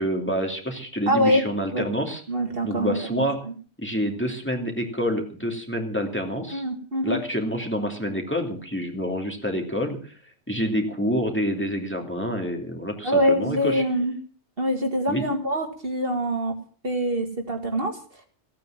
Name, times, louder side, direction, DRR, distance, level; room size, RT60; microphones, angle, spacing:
voice 1, 0.0-2.2 2.6-3.5 3.8-6.6 7.0-13.8 15.1-15.3, equal, 10° left, 2 dB, 2.7 m, -27 dB
voice 2, 1.1-1.5 1.7-1.9 2.3-3.5 6.5-7.2 13.0-14.1 14.6-16.5 16.8-18.0, equal, 55° right, 4 dB, 2.3 m, -24 dB
16.0 x 9.2 x 7.3 m, 0.43 s
omnidirectional pair, 1.2 m